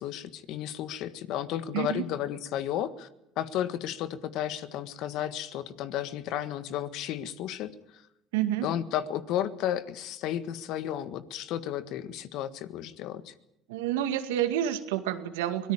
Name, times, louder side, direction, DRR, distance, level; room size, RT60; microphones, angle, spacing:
voice 1, 0.0-3.1 3.4-8.0 8.6-13.3, left 11 dB, 70° left, 12 dB, 1.6 m, -33 dB
voice 2, 8.3-8.7 13.7-15.7, right 11 dB, 85° right, 9 dB, 2.0 m, -29 dB
24.0 x 18.0 x 8.9 m, 0.85 s
hypercardioid pair, 75°, 0 cm